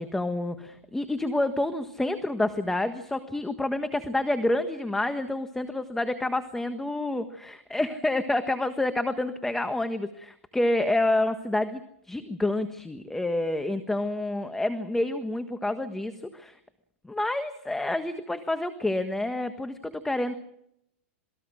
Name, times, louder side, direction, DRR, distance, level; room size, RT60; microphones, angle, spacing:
voice 1, 0.0-11.8 12.1-16.6 17.1-20.3, left 2 dB, 5° left, 9 dB, 1.4 m, -28 dB
27.0 x 20.5 x 6.5 m, 0.74 s
hypercardioid pair, 130°, 7 cm